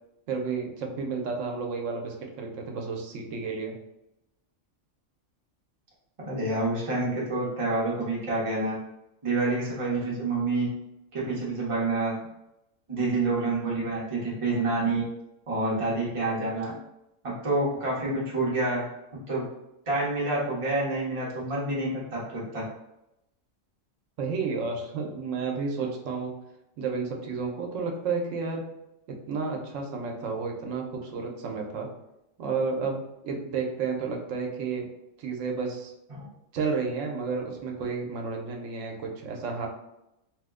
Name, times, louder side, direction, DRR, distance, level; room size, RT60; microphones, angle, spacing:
voice 1, 0.3-3.8 24.2-26.3 26.8-28.6 29.3-31.9 32.4-34.9 35.2-35.9 36.5-39.7, right 4 dB, 85° right, 1 dB, 1.0 m, -31 dB
voice 2, 6.2-8.8 9.2-10.7 11.1-12.1 12.9-15.1 15.5-16.7 17.2-18.8 19.3-19.4 19.9-22.6 36.1-36.3, right 2 dB, 30° right, -7 dB, 0.8 m, -28 dB
3.0 x 2.1 x 3.5 m, 0.88 s
omnidirectional pair, 1.3 m